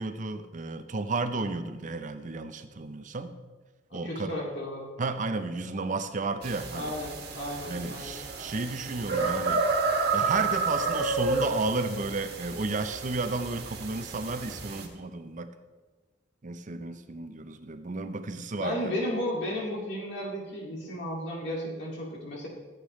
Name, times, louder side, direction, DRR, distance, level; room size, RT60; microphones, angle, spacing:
voice 1, 0.0-3.3 3.9-4.3 5.0-6.9 7.7-9.6 10.1-15.5 16.4-18.8, right 3 dB, 45° right, 9 dB, 0.6 m, -32 dB
voice 2, 3.9-4.9 6.7-8.2 18.6-22.5, left 1 dB, 65° left, -3 dB, 2.3 m, -34 dB
sound 1, 6.4-14.9, right 4 dB, 60° right, 1.6 m, -31 dB
15.0 x 8.2 x 3.2 m, 1.3 s
head